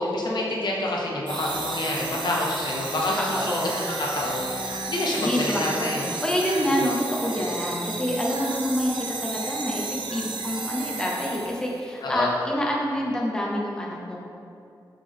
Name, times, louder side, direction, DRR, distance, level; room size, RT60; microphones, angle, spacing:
voice 1, 0.0-3.6 4.0-6.1 6.8-6.9 12.0-12.3, left 1 dB, 70° left, -2 dB, 1.0 m, -27 dB
sound 1, 1.3-11.8, right 4 dB, 80° right, 0.6 m, -33 dB
voice 2, 3.1-3.8 5.2-14.2, equal, 10° left, -3 dB, 0.6 m, -27 dB
7.4 x 3.6 x 3.6 m, 2.6 s
wide cardioid pair, 175°, 8 cm